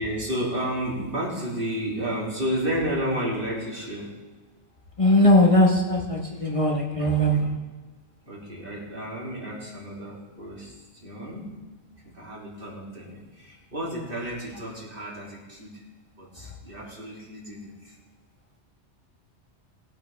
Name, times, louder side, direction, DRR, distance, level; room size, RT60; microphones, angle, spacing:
voice 1, 0.0-4.1 7.0-7.4 8.2-11.5 12.0-15.8 16.2-18.0, equal, 50° right, -5 dB, 3.3 m, -32 dB
voice 2, 5.0-7.5, left 1 dB, 30° left, -1 dB, 1.3 m, -20 dB
19.0 x 8.7 x 3.5 m, 1.3 s
omnidirectional pair, 1.1 m